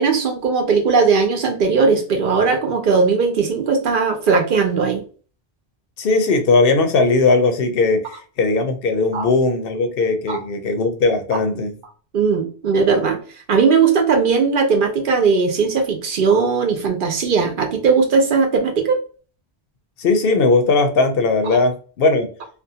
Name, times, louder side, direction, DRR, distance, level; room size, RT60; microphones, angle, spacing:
voice 1, 0.0-5.0 9.1-9.3 10.3-10.4 12.1-13.2 13.5-19.0, right 5 dB, 60° right, 4 dB, 0.7 m, -18 dB
voice 2, 6.0-11.8 20.0-22.3, left 3 dB, 70° left, 6 dB, 0.7 m, -18 dB
2.5 x 2.2 x 2.7 m, 0.40 s
omnidirectional pair, 1.1 m